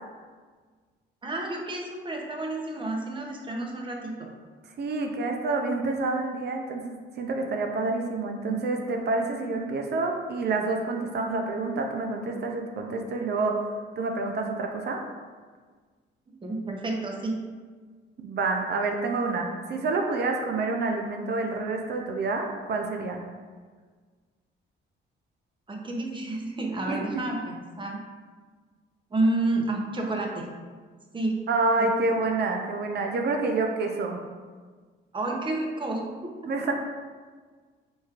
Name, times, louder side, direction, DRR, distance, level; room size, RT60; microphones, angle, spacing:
voice 1, 1.2-4.3 16.3-17.3 25.7-28.0 29.1-30.5 31.1-31.4 31.8-31.9 35.1-36.1, right 2 dB, 25° right, 0 dB, 0.7 m, -30 dB
voice 2, 4.8-15.0 18.2-23.2 26.9-27.0 31.5-34.2 36.5-36.7, right 3 dB, 55° right, 2 dB, 0.5 m, -28 dB
4.5 x 3.0 x 2.4 m, 1.5 s
cardioid pair, 90°, 20 cm